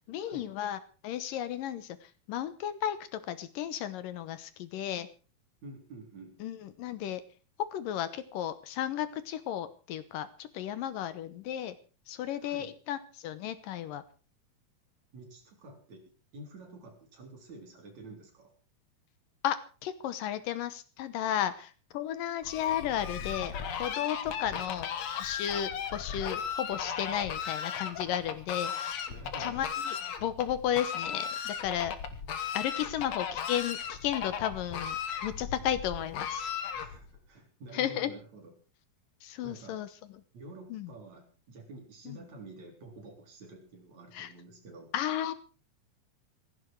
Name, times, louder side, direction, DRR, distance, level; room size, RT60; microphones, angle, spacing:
voice 1, 0.1-5.1 6.4-7.2 7.6-11.8 12.1-14.0 19.4-24.9 25.2-29.1 29.4-30.0 30.2-31.9 32.5-35.0 35.2-36.5 37.7-38.1 39.2-39.9 40.7-40.9 42.1-42.2 44.1-44.3 44.9-45.3, left 10 dB, 75° left, 14 dB, 2.6 m, -34 dB
voice 2, 5.6-6.4 12.4-12.7 15.1-18.5 24.5-24.7 29.1-29.6 36.7-38.5 39.4-39.8 40.3-44.9, right 2 dB, 50° right, 3 dB, 5.0 m, -49 dB
Fowl, 22.4-37.2, left 7 dB, 55° left, 2.3 m, -36 dB
17.0 x 15.5 x 4.7 m, 0.38 s
omnidirectional pair, 4.1 m